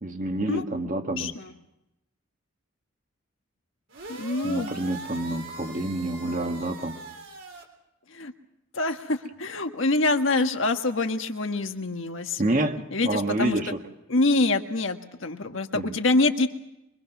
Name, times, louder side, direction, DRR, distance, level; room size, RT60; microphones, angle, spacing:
voice 1, 0.0-1.3 4.4-7.0 12.4-13.8 15.7-15.9, right 1 dB, 40° right, 5 dB, 1.6 m, -28 dB
voice 2, 1.2-1.5 4.1-4.7 8.1-8.3 8.7-12.4 12.9-13.6 14.1-16.5, left 2 dB, 70° left, 6 dB, 1.5 m, -25 dB
sound 1, 3.9-7.6, right 2 dB, 65° right, 3.5 m, -41 dB
24.5 x 23.5 x 6.0 m, 0.88 s
head